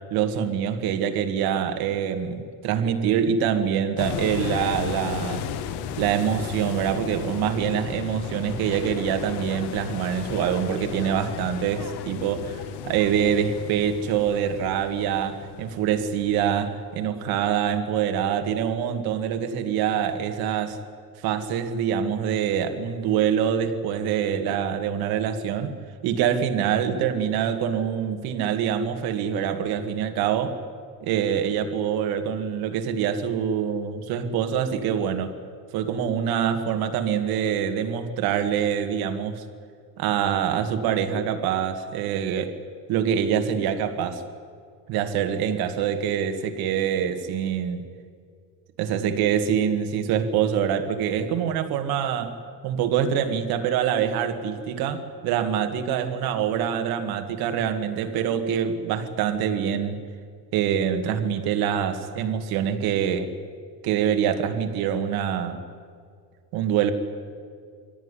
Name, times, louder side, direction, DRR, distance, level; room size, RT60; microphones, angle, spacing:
voice 1, 0.1-5.5 6.0-20.8 21.2-25.8 26.0-30.6 31.0-35.4 35.7-39.4 40.0-42.6 42.9-44.2 44.9-47.8 48.8-52.4 52.6-60.0 60.5-63.3 63.8-65.6 66.5-66.9, right 8 dB, 55° right, 7 dB, 2.0 m, -25 dB
sound 1, 4.0-16.8, left 8 dB, 65° left, 1.5 m, -35 dB
24.0 x 17.0 x 9.9 m, 2.2 s
cardioid pair, 170°, 42 cm